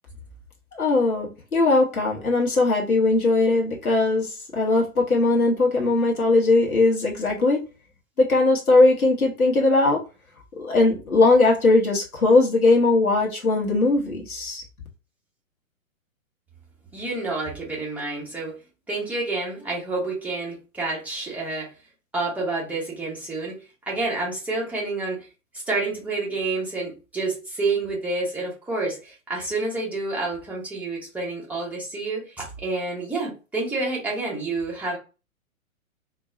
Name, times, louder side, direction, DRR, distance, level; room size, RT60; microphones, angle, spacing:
voice 1, 0.7-7.6 8.2-10.0 10.5-14.6, left 2 dB, 85° left, 1.0 m, -19 dB
voice 2, 16.9-18.6 18.9-21.7 22.1-23.5 23.9-25.3 25.7-35.0, right 3 dB, 5° right, 1.0 m, -28 dB
3.9 x 2.2 x 2.5 m
figure-of-eight pair, 120°, 42 cm